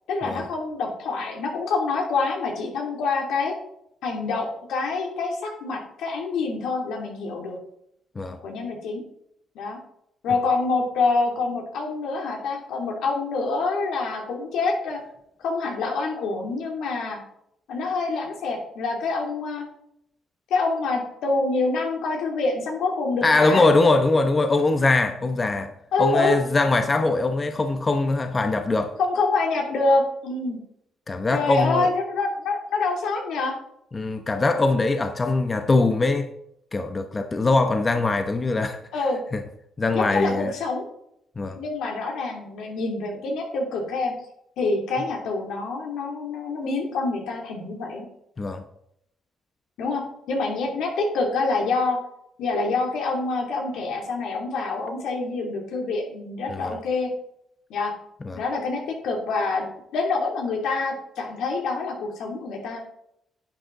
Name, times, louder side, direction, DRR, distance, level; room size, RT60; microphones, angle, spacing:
voice 1, 0.1-3.5 4.0-7.6 8.4-9.0 9.5-9.8 10.2-15.0 15.4-17.2 17.7-19.7 20.5-23.7 25.9-26.4 29.0-30.6 31.3-33.5 38.9-39.2 39.9-40.9 41.6-44.1 44.6-48.1 49.8-50.0 50.3-52.0 52.4-57.1 57.7-57.9 58.4-59.7 59.9-62.8, left 3 dB, 80° left, 2.8 m, -26 dB
voice 2, 23.2-25.7 26.0-28.9 31.1-31.9 33.9-36.3 36.7-38.8 39.3-39.4 39.8-40.5 41.4-41.6 48.4-48.6 56.5-56.8 58.2-58.4, left 3 dB, 30° left, 0.9 m, -22 dB
10.5 x 7.9 x 3.9 m
cardioid pair, 90°, 0 cm